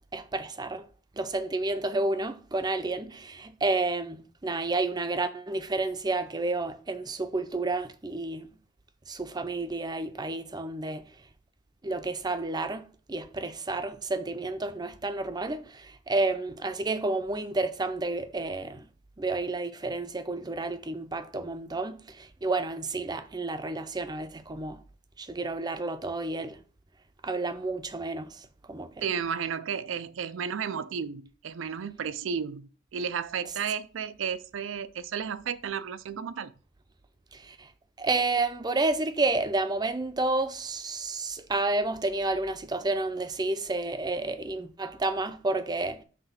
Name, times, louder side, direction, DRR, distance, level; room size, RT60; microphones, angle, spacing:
voice 1, 0.1-0.9 1.1-8.5 9.1-11.1 11.8-18.9 19.2-24.8 25.2-26.6 27.2-29.0 37.3-37.7 38.0-46.0, right 2 dB, 20° right, 0.5 m, -30 dB
voice 2, 29.0-36.5, right 7 dB, 85° right, 0.4 m, -33 dB
5.9 x 3.3 x 5.7 m
head